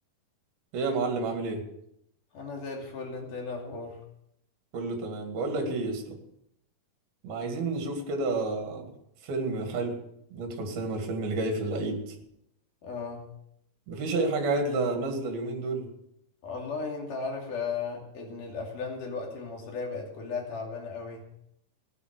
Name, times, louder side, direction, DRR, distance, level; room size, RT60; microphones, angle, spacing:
voice 1, 0.7-1.7 4.7-6.2 7.2-8.9 9.2-10.0 10.3-12.2 13.9-15.9, right 3 dB, 75° right, 4 dB, 4.0 m, -30 dB
voice 2, 2.3-4.0 12.8-13.3 16.4-21.3, left 4 dB, 60° left, 0 dB, 4.1 m, -36 dB
16.5 x 10.0 x 6.6 m, 0.76 s
omnidirectional pair, 4.5 m